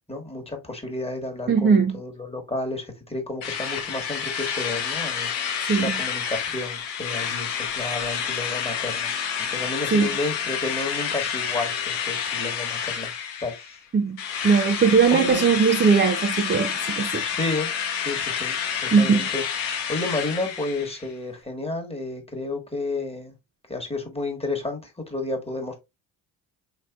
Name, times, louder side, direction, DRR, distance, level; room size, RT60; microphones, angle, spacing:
voice 1, 0.1-9.1 9.4-13.1 13.4-13.7 15.1-15.5 17.2-17.7 18.0-19.4 19.9-23.3 23.7-25.8, left 2 dB, 10° left, 1.4 m, -31 dB
voice 2, 1.5-2.0 5.6-5.9 9.9-10.1 13.9-17.2 18.9-19.3, right 5 dB, 25° right, 0.5 m, -20 dB
Drill, 3.4-13.8 14.2-21.1, left 7 dB, 90° left, 0.8 m, -29 dB
4.3 x 3.1 x 2.3 m
hypercardioid pair, 45°, 49 cm